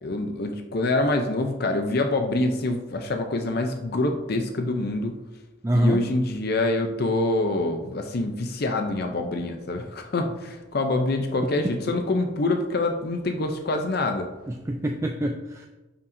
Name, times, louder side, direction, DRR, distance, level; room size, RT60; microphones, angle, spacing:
voice 1, 0.0-5.1 5.7-14.3, left 2 dB, 50° left, 5 dB, 0.6 m, -26 dB
voice 2, 5.6-6.1 11.6-11.8 14.5-15.7, right 1 dB, 15° right, 3 dB, 0.3 m, -25 dB
9.8 x 5.6 x 2.7 m, 1.1 s
head